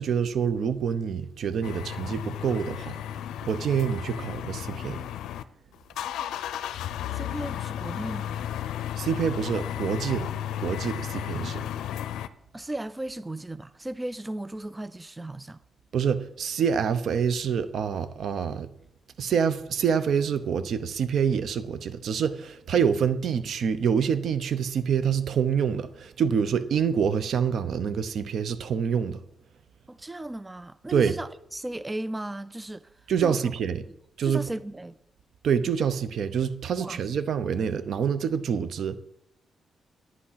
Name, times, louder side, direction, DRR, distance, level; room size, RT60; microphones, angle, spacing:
voice 1, 0.0-3.0 3.4-5.0 9.0-10.3 10.6-11.7 15.9-18.7 19.2-29.2 30.9-31.1 33.1-33.8 34.2-34.4 35.4-39.0, right 7 dB, 65° right, 0.7 m, -26 dB
sound 1, 1.6-5.4 5.7-12.3, left 10 dB, 90° left, 0.5 m, -34 dB
voice 2, 7.1-8.5 12.5-15.6 29.9-32.9 33.2-33.4 33.9-34.0 34.2-35.0 36.8-37.0, right 1 dB, 15° right, 0.3 m, -36 dB
9.5 x 8.8 x 5.7 m
cardioid pair, 95°, 0 cm